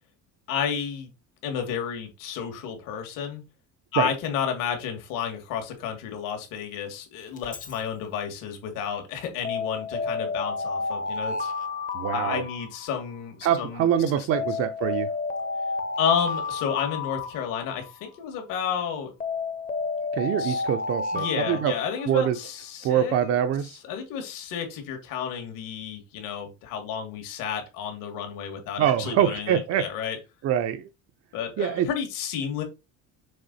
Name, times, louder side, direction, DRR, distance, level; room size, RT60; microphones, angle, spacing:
voice 1, 0.5-1.1 1.4-3.4 3.9-11.5 12.1-13.9 14.1-14.5 16.0-19.1 20.4-20.6 21.1-23.3 23.9-30.2 31.3-32.6, left 8 dB, 75° left, 2.2 m, -31 dB
Alarm, 7.4-7.7 9.4-13.2 14.3-18.1 19.2-22.4, left 4 dB, 25° left, 0.7 m, -31 dB
voice 2, 11.9-12.4 13.4-15.1 20.1-21.7 22.0-22.4 22.8-23.8 28.8-29.9 30.4-30.9 31.6-31.9, right 10 dB, 45° right, 0.6 m, -24 dB
6.6 x 3.8 x 4.1 m
cardioid pair, 155°, 33 cm